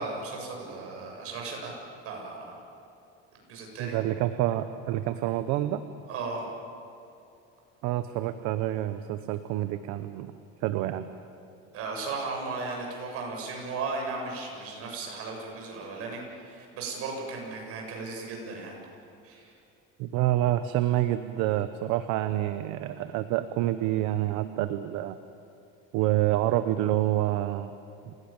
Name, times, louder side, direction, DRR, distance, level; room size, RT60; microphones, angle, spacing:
voice 1, 0.0-1.7 2.0-2.6 3.5-4.0 6.1-6.5 11.7-18.7 19.2-19.5, right 3 dB, 50° right, 0 dB, 7.5 m, -36 dB
voice 2, 3.8-5.8 7.8-10.3 10.6-11.0 20.0-25.2 25.9-27.7 28.1-28.2, right 14 dB, 65° right, 10 dB, 1.0 m, -27 dB
29.0 x 17.5 x 8.9 m, 2.5 s
cardioid pair, 145°, 30 cm